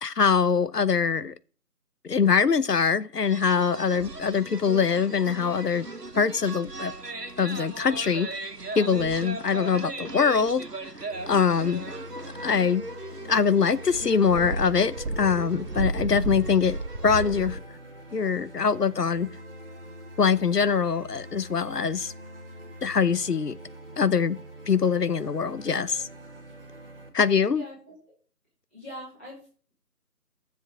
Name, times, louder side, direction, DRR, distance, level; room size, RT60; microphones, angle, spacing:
voice 1, 0.0-1.3 2.0-5.9 6.1-6.9 7.4-8.3 8.7-10.7 11.3-11.8 12.4-12.8 13.3-17.6 18.1-19.3 20.2-22.1 22.8-23.6 24.0-24.4 24.7-26.1 27.1-27.6, left 6 dB, 85° left, 0.8 m, -23 dB
sound 1, 3.2-17.6, right 2 dB, 90° right, 1.5 m, -35 dB
sound 2, 11.1-27.1, right 1 dB, 35° right, 2.1 m, -45 dB
voice 2, 27.5-28.2 28.7-29.7, equal, 10° left, 2.7 m, -43 dB
13.5 x 7.3 x 3.5 m
figure-of-eight pair, 165°, 47 cm